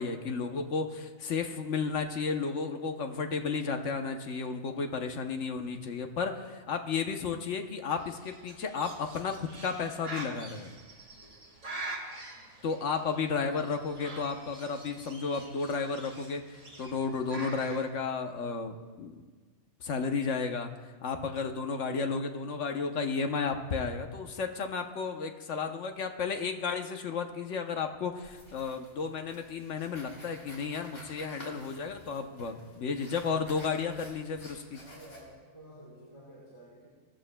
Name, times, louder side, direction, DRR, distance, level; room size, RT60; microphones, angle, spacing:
voice 1, 0.0-10.8 12.6-19.2 19.8-20.7 21.0-34.8, left 5 dB, 60° left, 5 dB, 1.1 m, -33 dB
Bird, 7.9-17.8, right 2 dB, 55° right, 2.2 m, -45 dB
sound 1, 28.2-35.3, left 1 dB, 85° left, 3.2 m, -51 dB
voice 2, 34.7-36.9, right 1 dB, 25° left, -8 dB, 3.3 m, -52 dB
19.0 x 14.0 x 2.2 m, 1.5 s
omnidirectional pair, 1.5 m